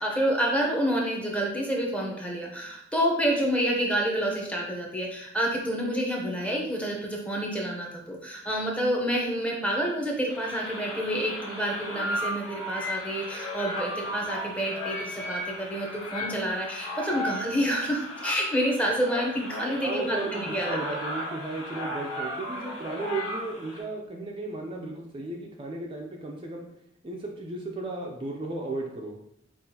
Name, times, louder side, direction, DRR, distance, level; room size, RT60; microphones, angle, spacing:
voice 1, 0.0-20.7, equal, 5° left, -1 dB, 0.6 m, -28 dB
sound 1, 10.3-23.8, left 1 dB, 80° left, 1.3 m, -35 dB
voice 2, 19.8-26.7 27.0-29.2, right 2 dB, 25° right, 0 dB, 0.4 m, -35 dB
5.5 x 2.4 x 2.7 m, 0.78 s
head